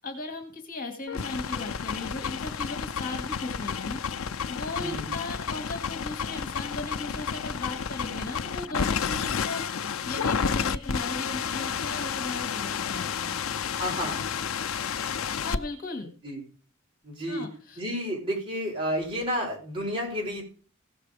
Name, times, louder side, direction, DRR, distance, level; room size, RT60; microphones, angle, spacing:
voice 1, 0.0-9.6 10.1-13.4 15.4-16.1 17.3-17.8, left 2 dB, 45° left, 5 dB, 2.1 m, -37 dB
sound 1, 1.1-15.6, left 6 dB, 80° left, 0.6 m, -31 dB
voice 2, 4.8-5.1 13.7-14.2 16.2-16.4 17.0-17.5 17.8-20.5, equal, 25° right, 0 dB, 4.6 m, -31 dB
16.0 x 6.8 x 4.9 m, 0.40 s
head